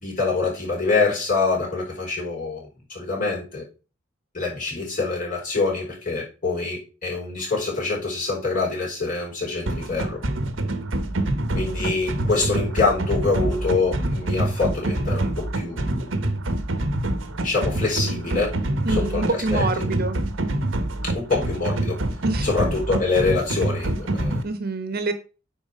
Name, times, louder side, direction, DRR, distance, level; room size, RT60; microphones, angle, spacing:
voice 1, 0.0-3.6 4.3-10.2 11.5-16.2 17.4-18.6 18.9-19.6 21.1-22.0 22.4-24.4, left 3 dB, 45° left, -4 dB, 5.2 m, -25 dB
sound 1, 9.7-24.4, right 1 dB, 75° right, 1.1 m, -26 dB
voice 2, 18.8-20.2 22.2-22.5 24.4-25.1, right 3 dB, 50° right, 10 dB, 1.1 m, -26 dB
9.5 x 4.5 x 5.3 m, 0.33 s
head